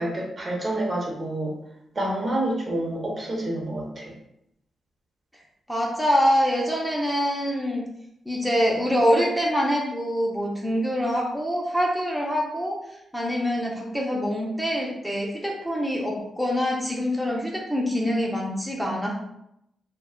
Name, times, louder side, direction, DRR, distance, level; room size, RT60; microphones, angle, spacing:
voice 1, 0.0-1.6 1.9-4.1, right 1 dB, 45° right, -1 dB, 0.8 m, -28 dB
voice 2, 5.7-7.9 8.3-12.8 13.1-19.1, equal, ahead, -2 dB, 0.6 m, -25 dB
2.3 x 2.2 x 3.6 m, 0.81 s
cardioid pair, 60°, 0 cm